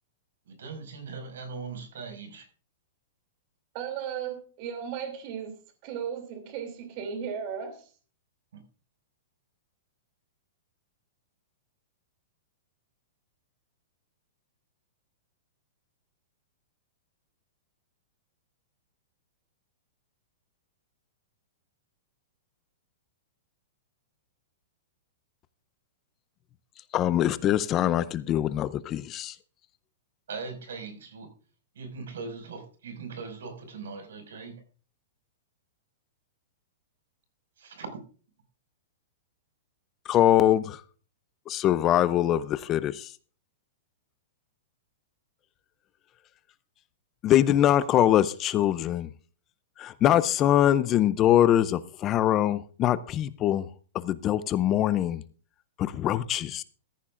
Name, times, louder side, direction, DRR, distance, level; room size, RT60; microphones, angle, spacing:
voice 1, 0.5-2.5 8.5-8.6 30.3-31.3 31.8-34.5 37.6-38.0, right 4 dB, 85° right, 7 dB, 5.4 m, -40 dB
voice 2, 3.7-5.6 5.8-7.9, right 7 dB, 35° right, 7 dB, 2.7 m, -35 dB
voice 3, 26.9-29.3 40.1-40.8 41.5-43.1 47.2-49.1 49.8-53.7 53.9-55.2 55.8-56.6, left 12 dB, 20° left, 16 dB, 0.4 m, -23 dB
14.5 x 14.5 x 2.5 m, 0.38 s
supercardioid pair, 170°, 0 cm